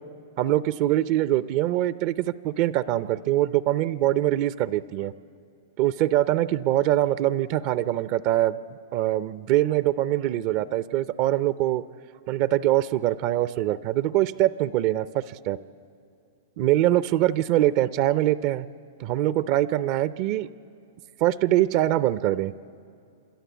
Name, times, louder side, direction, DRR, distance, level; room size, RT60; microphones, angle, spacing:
voice 1, 0.4-5.1 5.8-8.6 8.9-11.8 12.3-15.6 16.6-18.7 19.0-20.5 21.2-22.5, right 14 dB, 50° right, 16 dB, 0.5 m, -23 dB
27.5 x 13.0 x 8.2 m, 2.6 s
hypercardioid pair, 125°, 0 cm